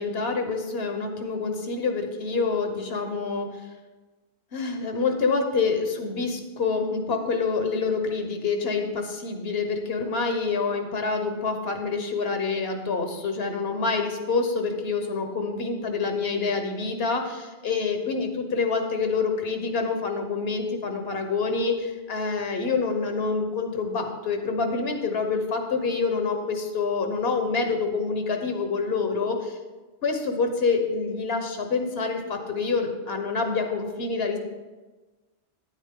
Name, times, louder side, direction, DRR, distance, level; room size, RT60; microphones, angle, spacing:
voice 1, 0.0-3.6 4.5-29.6 30.0-34.4, left 4 dB, 75° left, 5 dB, 1.3 m, -27 dB
9.7 x 8.1 x 3.7 m, 1.2 s
omnidirectional pair, 1.1 m